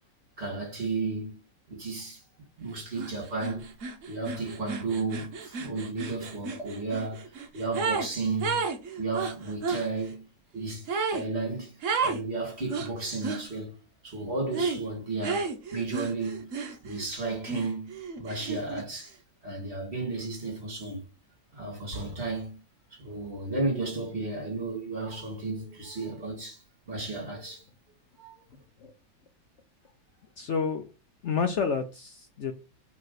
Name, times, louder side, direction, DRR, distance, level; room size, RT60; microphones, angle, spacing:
voice 1, 0.4-1.4 1.7-2.2 2.6-3.7 4.1-7.3 7.5-8.6 9.0-10.3 10.5-11.8 12.0-13.7 14.0-16.6 16.8-19.1 19.4-21.0 21.5-22.6 22.9-26.6 26.9-27.6 28.2-28.3, right 3 dB, 35° right, 2.6 m, -33 dB
sound 1, 3.0-3.1 3.4-8.1 8.4-9.9 10.9-11.3 11.8-12.2 12.7-13.4 14.5-14.8 15.2-17.1 17.5-18.8, right 5 dB, 50° right, 1.1 m, -32 dB
voice 2, 30.4-30.9 31.2-32.5, left 5 dB, 65° left, 0.7 m, -29 dB
5.3 x 3.4 x 5.7 m
omnidirectional pair, 1.9 m